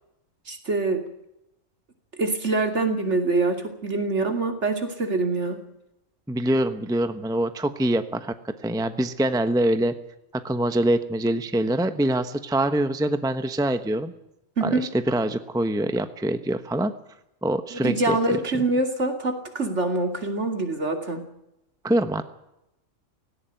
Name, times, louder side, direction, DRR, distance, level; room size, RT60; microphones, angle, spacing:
voice 1, 0.5-1.0 2.2-5.6 14.6-14.8 17.7-21.2, right 2 dB, 55° right, 5 dB, 3.1 m, -25 dB
voice 2, 6.3-8.3 8.6-9.9 10.3-14.1 14.6-16.9 17.4-18.2 21.8-22.2, right 1 dB, 5° right, 10 dB, 0.9 m, -24 dB
18.0 x 17.0 x 9.2 m, 0.85 s
omnidirectional pair, 1.4 m